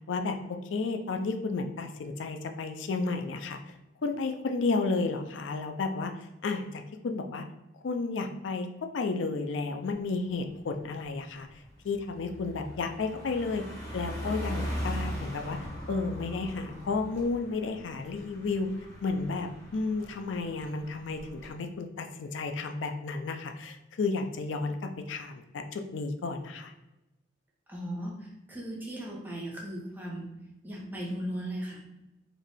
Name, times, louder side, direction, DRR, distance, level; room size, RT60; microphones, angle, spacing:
voice 1, 0.1-3.6 4.0-6.1 6.4-7.4 7.8-8.7 8.9-11.5 11.8-13.6 13.9-15.6 15.9-18.7 19.0-26.7, left 3 dB, 90° left, 6 dB, 0.4 m, -32 dB
Car passing by, 9.9-10.1 10.5-21.5, equal, 15° left, 1.2 m, -40 dB
voice 2, 27.7-30.3 30.6-31.8, equal, 10° right, -4 dB, 1.1 m, -37 dB
3.9 x 2.6 x 3.5 m, 0.95 s
head